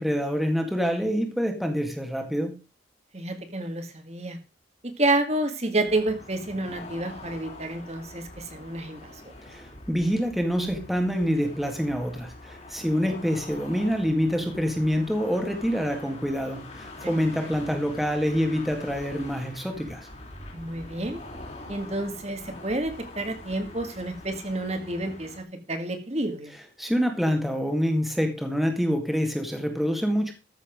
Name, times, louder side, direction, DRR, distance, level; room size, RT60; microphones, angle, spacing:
voice 1, 0.0-2.6 9.4-20.1 26.8-30.3, equal, ahead, 1.9 m, -26 dB
voice 2, 3.1-4.4 5.0-9.3 13.0-13.1 17.0-17.1 17.4-17.5 20.5-21.2 21.7-26.5, right 2 dB, 35° right, 1.9 m, -29 dB
sound 1, 5.9-25.4, left 2 dB, 35° left, 3.1 m, -44 dB
14.0 x 7.1 x 5.2 m
head